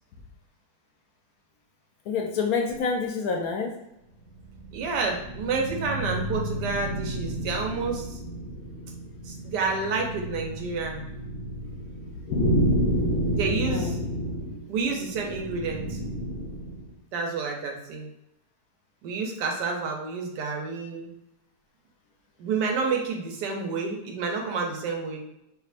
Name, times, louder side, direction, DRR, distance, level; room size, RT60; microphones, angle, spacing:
voice 1, 2.1-3.7 12.3-12.9 13.2-13.4 13.6-13.9, left 5 dB, 70° left, 2 dB, 0.9 m, -28 dB
sound 1, 4.2-16.9, equal, 40° left, 0.6 m, -30 dB
voice 2, 4.7-8.2 9.2-11.0 13.3-13.9 14.7-16.0 17.1-18.1 19.0-21.1 22.4-25.2, right 4 dB, 90° right, 1 dB, 1.3 m, -29 dB
4.7 x 2.8 x 2.5 m, 0.85 s
omnidirectional pair, 1.8 m